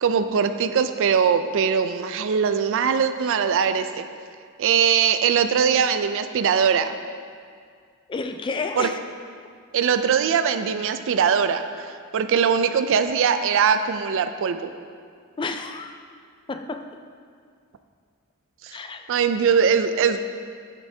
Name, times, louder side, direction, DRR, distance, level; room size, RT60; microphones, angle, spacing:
voice 1, 0.0-4.0 4.6-7.0 8.8-8.9 9.7-14.7 18.6-18.8 19.1-20.2, right 7 dB, 60° right, 10 dB, 0.4 m, -21 dB
voice 2, 8.1-9.0 15.4-16.0 16.5-16.9 18.7-19.1, left 3 dB, 20° left, 7 dB, 0.3 m, -30 dB
9.0 x 8.2 x 2.7 m, 2.1 s
head